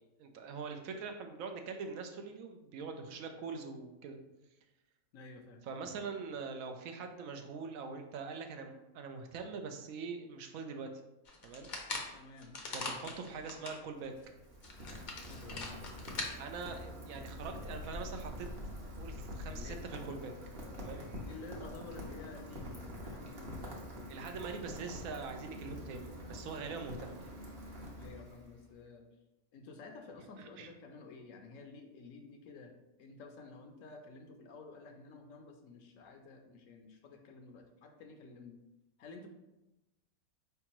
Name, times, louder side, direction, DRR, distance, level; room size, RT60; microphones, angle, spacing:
voice 1, 0.0-4.2 5.6-10.9 11.4-11.7 12.7-14.1 16.4-18.5 19.0-20.3 20.8-21.0 24.1-27.3 30.4-30.7, right 5 dB, 75° right, 5 dB, 1.0 m, -43 dB
voice 2, 5.1-5.6 12.1-12.6 12.9-13.5 15.3-15.9 19.5-19.8 21.2-23.6 28.0-29.1 29.5-32.7 33.0-38.6 39.0-39.3, left 3 dB, 70° left, 4 dB, 0.9 m, -52 dB
sound 1, 11.3-13.8 14.2-14.3 14.6-16.3, left 3 dB, 45° left, 0.6 m, -41 dB
Rain, 13.9-28.7, left 1 dB, 45° right, 1.0 m, -46 dB
4.6 x 3.4 x 3.0 m, 0.98 s
omnidirectional pair, 1.5 m